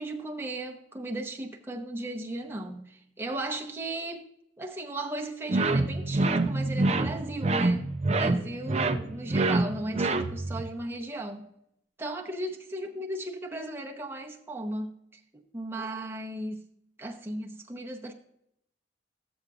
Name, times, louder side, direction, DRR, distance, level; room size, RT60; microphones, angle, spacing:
voice 1, 0.0-4.3 4.6-11.5 12.0-16.6 17.0-18.1, right 1 dB, 15° right, 0.8 m, -36 dB
sound 1, 5.5-10.6, right 2 dB, 35° right, 0.5 m, -26 dB
14.5 x 7.9 x 2.4 m
head